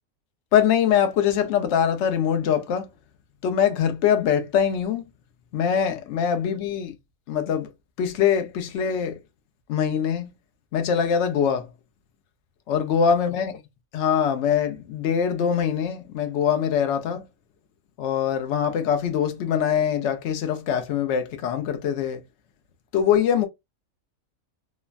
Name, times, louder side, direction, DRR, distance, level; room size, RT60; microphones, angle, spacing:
voice 1, 0.5-2.9 3.4-5.1 5.5-6.9 7.3-7.7 8.0-9.2 9.7-10.3 10.7-11.7 12.7-13.5 13.9-17.3 18.0-22.2 22.9-23.5, left 8 dB, 65° left, 0.8 m, -23 dB
3.1 x 2.1 x 2.3 m
omnidirectional pair, 1.4 m